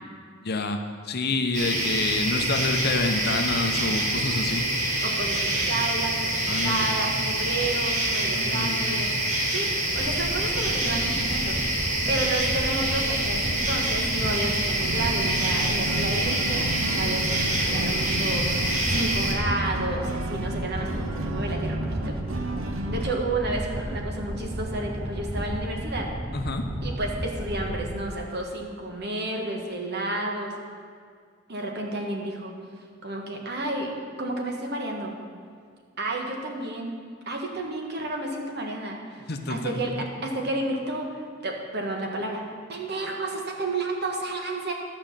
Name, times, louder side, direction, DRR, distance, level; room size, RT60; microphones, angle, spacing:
voice 1, 0.4-0.8 1.0-4.7 6.5-6.9 8.3-9.1 26.3-26.7 39.3-40.0, left 3 dB, 55° left, 6 dB, 0.8 m, -28 dB
sound 1, 1.5-19.3, right 1 dB, 40° right, 1.6 m, -26 dB
voice 2, 5.0-9.1 9.5-22.2 22.9-26.1 26.8-30.5 31.5-32.5 33.0-33.9 34.2-35.1 36.0-36.9 37.2-42.4 42.7-44.7, right 2 dB, 55° right, 1 dB, 1.5 m, -31 dB
sound 2, 9.9-28.0, right 1 dB, 10° right, 0.6 m, -33 dB
sound 3, 14.8-23.1, right 1 dB, 90° right, 0.8 m, -33 dB
12.0 x 5.2 x 7.4 m, 2.1 s
head